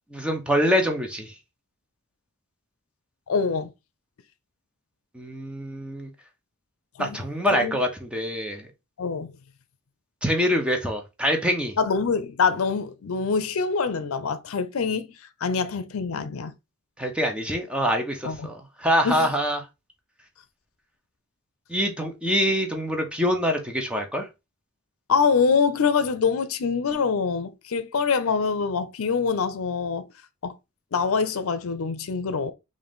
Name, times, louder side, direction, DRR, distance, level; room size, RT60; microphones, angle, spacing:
voice 1, 0.1-1.3 5.1-6.1 7.0-8.7 10.2-11.8 17.0-19.6 21.7-24.3, equal, 5° right, 0.7 m, -25 dB
voice 2, 3.3-3.7 7.0-7.2 7.5-7.8 9.0-9.3 11.8-15.1 15.4-16.5 18.2-18.5 19.0-19.3 25.1-30.1 30.4-30.5 30.9-32.5, left 5 dB, 75° left, 0.5 m, -25 dB
3.8 x 2.6 x 3.5 m
head